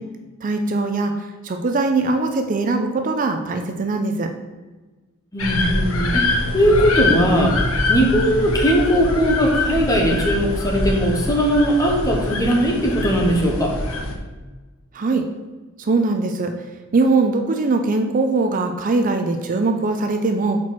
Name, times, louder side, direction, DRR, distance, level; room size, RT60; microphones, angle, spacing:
voice 1, 0.4-4.3 14.9-15.3 15.8-16.5 16.9-20.6, right 3 dB, 40° right, 5 dB, 0.4 m, -21 dB
voice 2, 5.3-7.6 7.9-13.7, equal, 15° left, 0 dB, 1.1 m, -19 dB
sound 1, 5.4-14.1, left 2 dB, 80° left, 0.9 m, -24 dB
4.5 x 4.5 x 5.9 m, 1.3 s
head